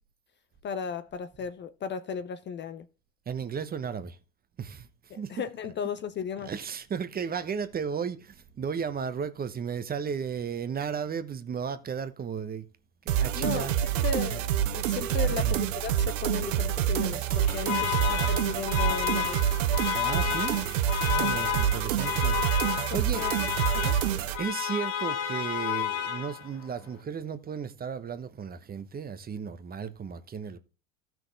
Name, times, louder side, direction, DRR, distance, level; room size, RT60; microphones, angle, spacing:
voice 1, 0.6-2.9 5.1-6.5 13.3-19.6 21.1-21.3 22.9-24.0, left 7 dB, 30° left, 0.6 m, -36 dB
voice 2, 3.3-4.2 4.6-4.9 5.1-5.3 6.4-12.6 13.0-13.7 15.2-15.5 17.8-18.0 20.0-20.6 21.0-23.2 24.4-30.6, right 6 dB, 25° right, 1.1 m, -34 dB
sound 1, 13.1-24.4, right 10 dB, 70° right, 1.1 m, -27 dB
Alarm, 17.2-26.7, left 10 dB, 70° left, 2.9 m, -31 dB
15.0 x 6.1 x 3.4 m
hypercardioid pair, 85°, 40 cm